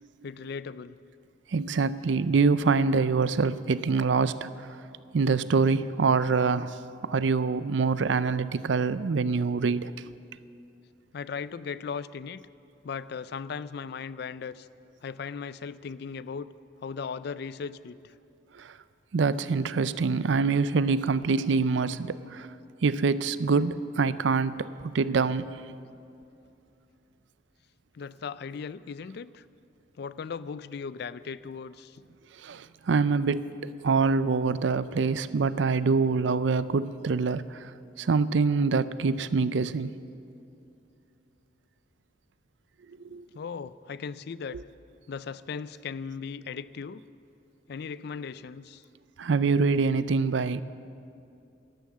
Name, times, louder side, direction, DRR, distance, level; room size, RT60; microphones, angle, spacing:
voice 1, 0.2-1.0 11.1-12.4 12.8-14.7 15.0-16.5 16.8-18.1 27.9-29.4 30.0-32.0 43.3-44.6 45.1-47.0 47.7-48.8, left 6 dB, 60° left, 16 dB, 0.4 m, -37 dB
voice 2, 1.5-4.8 5.1-10.1 18.5-18.8 19.1-22.5 22.8-25.5 32.4-37.7 38.0-39.9 43.1-43.3 49.2-50.6, right 4 dB, 75° right, 16 dB, 0.5 m, -25 dB
13.0 x 12.5 x 7.3 m, 2.6 s
head